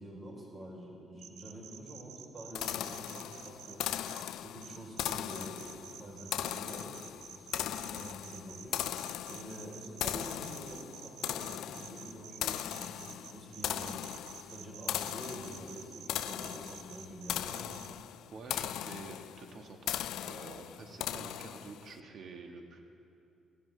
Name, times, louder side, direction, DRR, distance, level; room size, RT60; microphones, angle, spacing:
voice 1, 0.0-3.8 4.3-6.9 7.3-8.8 9.3-13.9 14.4-17.8 21.1-21.2, right 1 dB, 30° right, -2 dB, 4.1 m, -47 dB
sound 1, 1.2-4.2 4.6-17.9, right 9 dB, 85° right, 0.8 m, -50 dB
sound 2, 2.6-21.9, left 12 dB, 85° left, 0.3 m, -39 dB
voice 2, 18.3-20.0 20.3-22.8, right 4 dB, 60° right, 3 dB, 1.7 m, -48 dB
18.5 x 16.0 x 3.4 m, 2.6 s
cardioid pair, 90°, 0 cm